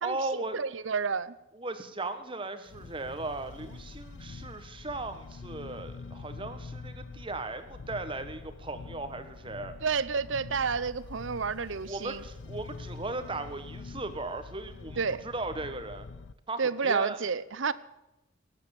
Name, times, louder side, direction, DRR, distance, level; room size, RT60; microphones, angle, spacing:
voice 1, 0.0-0.6 1.5-9.8 11.8-16.1 16.5-17.2, right 2 dB, 25° right, 9 dB, 1.3 m, -37 dB
voice 2, 0.5-1.3 9.8-12.2 15.0-15.2 16.6-17.7, right 5 dB, 70° right, 17 dB, 0.7 m, -30 dB
sound 1, 2.7-16.3, left 4 dB, 70° left, 0.5 m, -45 dB
18.5 x 9.4 x 7.2 m, 0.93 s
head